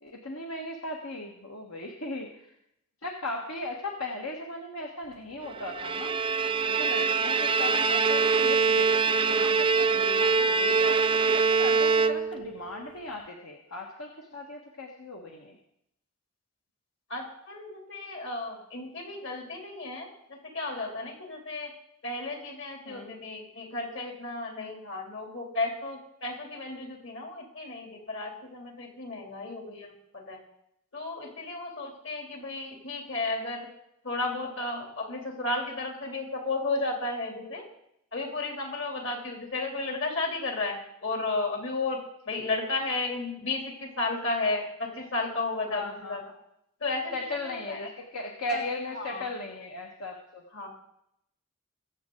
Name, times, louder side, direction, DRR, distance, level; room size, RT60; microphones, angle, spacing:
voice 1, 0.0-2.5 3.0-6.2 6.6-11.0 11.3-15.6 22.8-23.1 45.7-46.2 47.1-50.4, left 2 dB, 75° left, 0 dB, 1.6 m, -37 dB
Bowed string instrument, 5.6-12.6, right 5 dB, 25° right, 0.4 m, -24 dB
voice 2, 17.1-21.7 22.0-30.4 30.9-33.7 34.0-37.6 38.1-42.0 42.3-46.2 46.8-47.1 47.4-47.9 48.5-48.6 48.9-49.2 50.5-50.7, left 3 dB, 60° left, 1 dB, 3.1 m, -33 dB
22.5 x 7.8 x 3.9 m, 0.78 s
head